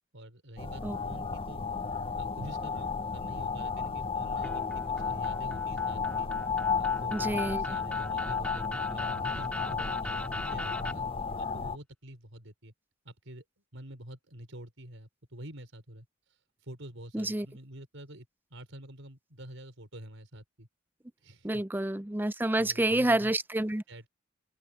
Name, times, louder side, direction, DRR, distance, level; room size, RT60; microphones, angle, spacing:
voice 1, 0.1-1.6 2.2-4.6 5.0-6.3 6.8-11.1 11.4-12.7 13.0-13.4 13.7-20.7 21.2-21.9 22.6-23.4 23.9-24.1, right 1 dB, 85° right, 4.6 m, -47 dB
sound 1, 0.6-11.8, left 5 dB, 30° left, 0.6 m, -33 dB
sound 2, 4.4-10.9, left 1 dB, 5° left, 2.2 m, -40 dB
voice 2, 7.1-7.6 17.1-17.5 21.4-23.8, right 1 dB, 10° right, 0.5 m, -28 dB
open air
head